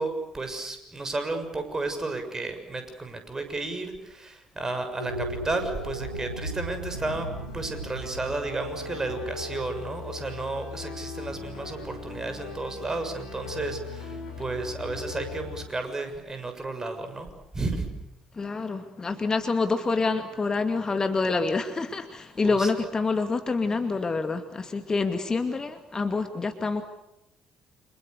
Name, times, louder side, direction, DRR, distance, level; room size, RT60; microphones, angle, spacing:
voice 1, 0.0-7.3 7.5-17.3 17.5-17.9 22.4-22.7, right 3 dB, 20° right, 7 dB, 6.9 m, -32 dB
sound 1, 4.9-11.3, equal, 90° right, 2.1 m, -38 dB
sound 2, 6.9-15.7, left 3 dB, 75° left, 4.8 m, -39 dB
voice 2, 18.4-26.8, left 4 dB, 30° left, 7 dB, 2.4 m, -27 dB
29.5 x 28.0 x 6.8 m, 0.85 s
figure-of-eight pair, 50°, 2 cm